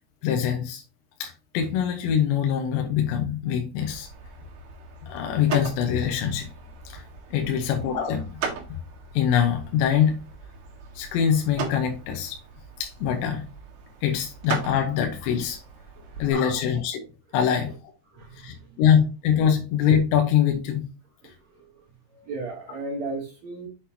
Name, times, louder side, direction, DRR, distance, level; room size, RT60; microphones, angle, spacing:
voice 1, 0.2-0.8 1.2-4.1 5.0-6.5 6.9-7.0 7.3-8.4 8.7-8.8 9.1-10.2 11.0-12.4 12.8-13.5 14.0-15.6 16.2-17.0 17.3-17.7 18.4-20.9 21.2-21.3, left 8 dB, 75° left, 3 dB, 3.1 m, -24 dB
sound 1, 3.8-16.3, right 5 dB, 60° right, 3.2 m, -38 dB
voice 2, 15.9-16.3 18.1-18.8 21.2-23.7, right 3 dB, 80° right, 0 dB, 1.5 m, -37 dB
7.8 x 6.2 x 2.8 m, 0.33 s
omnidirectional pair, 5.4 m